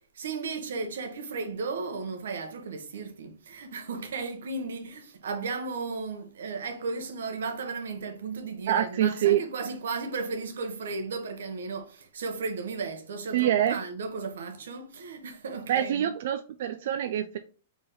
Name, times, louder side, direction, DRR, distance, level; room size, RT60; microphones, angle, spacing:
voice 1, 0.1-16.1, right 4 dB, 85° right, 1.0 m, -35 dB
voice 2, 8.7-9.4 13.3-13.8 15.7-17.4, right 11 dB, 50° right, 0.4 m, -25 dB
4.2 x 3.6 x 3.5 m
supercardioid pair, 175°, 0 cm